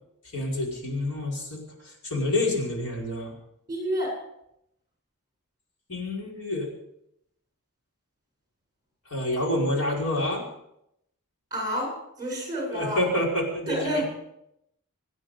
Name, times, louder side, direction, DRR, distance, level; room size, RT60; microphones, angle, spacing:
voice 1, 0.3-3.3 5.9-6.7 9.1-10.4 12.7-14.0, left 1 dB, 70° left, -2 dB, 5.4 m, -28 dB
voice 2, 3.7-4.1 11.5-13.1 13.7-14.0, equal, 15° right, -1 dB, 8.0 m, -29 dB
26.5 x 9.9 x 5.2 m, 0.80 s
head